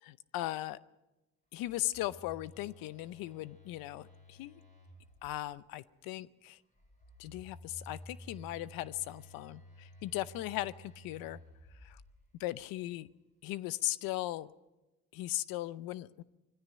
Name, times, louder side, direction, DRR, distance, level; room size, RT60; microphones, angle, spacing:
voice 1, 0.1-0.8 1.5-4.6 5.2-6.6 7.2-11.4 11.8-12.0 12.4-13.1 13.4-14.5 15.1-16.2, left 16 dB, 90° left, 18 dB, 0.7 m, -38 dB
Telephone, 1.6-5.6 6.8-12.5, equal, 20° left, 6.7 m, -54 dB
21.0 x 15.5 x 9.2 m, 1.0 s
supercardioid pair, 75°, 34 cm